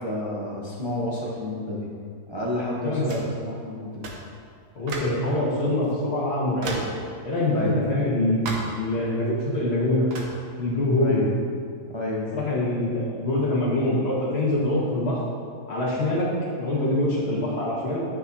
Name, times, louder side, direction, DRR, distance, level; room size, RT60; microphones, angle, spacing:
voice 1, 0.0-1.9 2.3-4.1 7.5-7.8 10.9-11.3 11.9-12.3, left 1 dB, 25° right, -4 dB, 0.7 m, -30 dB
sound 1, 3.1-3.4 4.0-4.3 4.9-5.2 5.9-6.0 6.6-7.0 8.5-8.8 10.1-10.4, right 2 dB, 70° right, 1.4 m, -34 dB
voice 2, 4.8-6.8 7.2-10.1 10.6-11.2 12.3-15.2 15.7-16.3 16.6-18.0, left 1 dB, 45° left, -5 dB, 1.8 m, -24 dB
10.0 x 6.0 x 2.8 m, 2.2 s
omnidirectional pair, 1.5 m